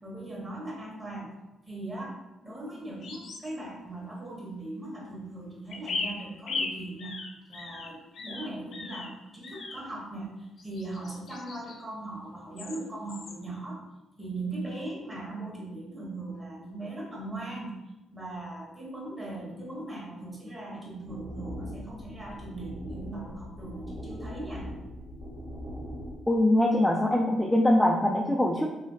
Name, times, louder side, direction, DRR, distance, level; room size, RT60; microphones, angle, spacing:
voice 1, 0.0-1.3 1.6-7.2 7.5-13.8 14.2-17.8 18.1-24.7, right 2 dB, 20° right, -4 dB, 1.2 m, -39 dB
sound 1, 3.0-3.6 5.7-9.1 9.4-9.9 10.6-11.8 12.6-12.8 13.1-13.4, left 3 dB, 60° left, 0.5 m, -37 dB
sound 2, 21.0-26.2, equal, 45° right, 0.9 m, -40 dB
voice 2, 26.3-28.7, left 1 dB, 5° left, -2 dB, 0.3 m, -23 dB
3.3 x 2.7 x 2.7 m, 1.0 s
cardioid pair, 90°, 0 cm